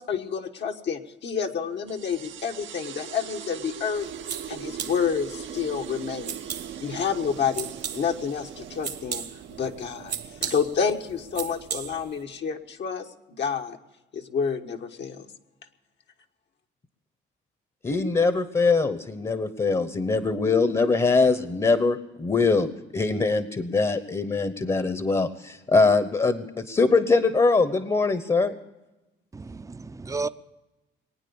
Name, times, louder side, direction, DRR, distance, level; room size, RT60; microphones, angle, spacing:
voice 1, 0.0-4.1 4.5-6.3 6.8-7.7 7.9-9.2 9.6-10.1 10.4-13.8 14.1-15.3, left 6 dB, 65° left, 3 dB, 1.3 m, -29 dB
sound 1, 1.9-12.9, right 9 dB, 75° right, 0.9 m, -41 dB
sound 2, 3.9-12.2, right 7 dB, 60° right, 1.3 m, -38 dB
voice 2, 17.8-22.7 22.9-28.5, left 3 dB, 25° left, 12 dB, 1.0 m, -22 dB
voice 3, 29.3-30.3, right 3 dB, 15° right, 12 dB, 0.6 m, -32 dB
21.0 x 9.2 x 7.0 m, 1.0 s
cardioid pair, 90°, 20 cm